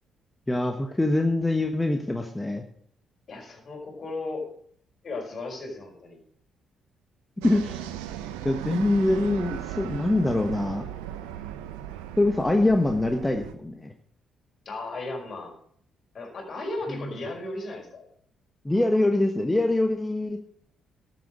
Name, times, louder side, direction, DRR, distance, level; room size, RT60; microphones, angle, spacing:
voice 1, 0.5-2.6 7.4-7.8 8.4-10.9 12.2-13.9 16.9-17.1 18.6-20.4, left 2 dB, 15° left, 4 dB, 1.4 m, -24 dB
voice 2, 3.3-4.5 5.0-6.2 14.7-15.5 16.1-18.1, left 2 dB, 50° left, 1 dB, 5.2 m, -35 dB
sound 1, 7.4-13.5, right 11 dB, 80° right, 0.9 m, -37 dB
12.5 x 7.8 x 6.2 m, 0.62 s
hypercardioid pair, 45°, 0 cm